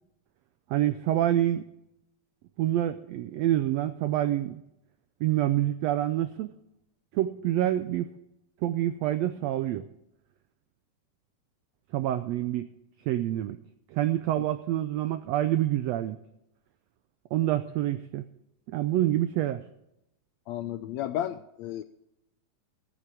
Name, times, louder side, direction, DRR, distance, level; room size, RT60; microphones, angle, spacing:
voice 1, 0.7-1.6 2.6-4.6 5.2-6.5 7.1-8.1 8.6-9.9 11.9-12.7 13.1-13.6 13.9-16.2 17.3-18.2 18.7-19.6, right 13 dB, 90° right, 11 dB, 1.5 m, -27 dB
voice 2, 20.5-21.8, left 12 dB, 80° left, 11 dB, 1.6 m, -33 dB
14.5 x 8.5 x 6.1 m, 0.84 s
omnidirectional pair, 3.6 m